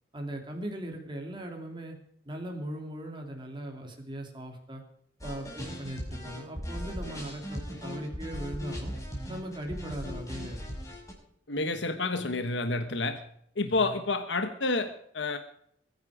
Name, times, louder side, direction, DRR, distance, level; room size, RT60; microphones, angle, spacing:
voice 1, 0.1-2.0 2.3-4.8 5.2-8.9 9.3-10.7 13.6-13.9, right 1 dB, 25° right, 2 dB, 2.8 m, -39 dB
sound 1, 5.2-11.1, equal, 20° left, 5.6 m, -38 dB
voice 2, 11.5-13.2 13.6-15.4, left 3 dB, 75° left, 8 dB, 1.3 m, -29 dB
22.5 x 10.5 x 4.9 m, 0.69 s
head